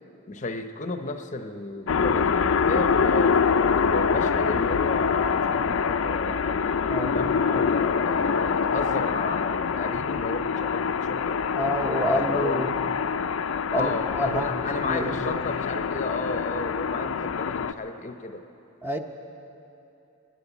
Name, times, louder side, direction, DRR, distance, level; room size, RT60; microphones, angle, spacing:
voice 1, 0.3-3.5 3.8-6.6 7.1-11.4 12.0-12.8 13.7-18.4, left 3 dB, 35° left, 7 dB, 0.6 m, -33 dB
sound 1, 1.9-17.7, left 6 dB, 85° left, 0.5 m, -25 dB
voice 2, 6.9-7.2 11.6-12.7 13.7-15.4 18.8-19.0, equal, 10° right, 4 dB, 0.7 m, -28 dB
20.0 x 7.7 x 9.2 m, 2.9 s
head